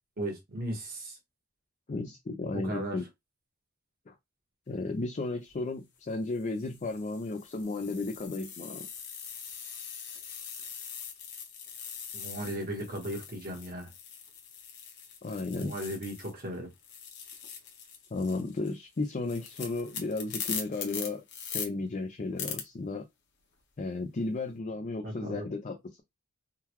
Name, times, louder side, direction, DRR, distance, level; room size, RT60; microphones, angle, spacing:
voice 1, 0.2-1.2 2.5-3.0 12.1-13.9 15.6-16.7 25.0-25.4, right 1 dB, 45° right, 1.1 m, -36 dB
voice 2, 1.9-3.0 4.1-4.2 4.7-8.9 15.2-15.7 18.1-23.0 23.8-26.0, left 3 dB, 35° left, 0.5 m, -34 dB
sound 1, 5.3-5.6 6.3-16.5 16.7-21.7 22.4-22.6, left 7 dB, 60° left, 0.9 m, -42 dB
3.7 x 2.2 x 2.9 m
head